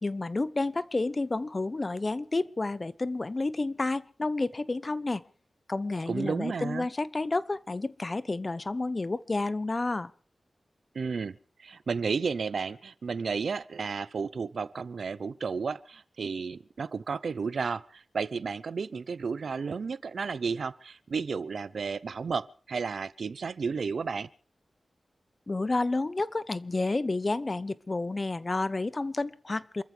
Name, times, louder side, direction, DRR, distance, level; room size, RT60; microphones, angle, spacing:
voice 1, 0.0-5.2 5.7-10.1 25.5-29.8, left 2 dB, 35° left, 16 dB, 0.9 m, -30 dB
voice 2, 6.1-6.9 10.9-24.3, right 5 dB, 80° right, 17 dB, 0.7 m, -32 dB
28.0 x 14.5 x 3.4 m, 0.42 s
wide cardioid pair, 85°, 0 cm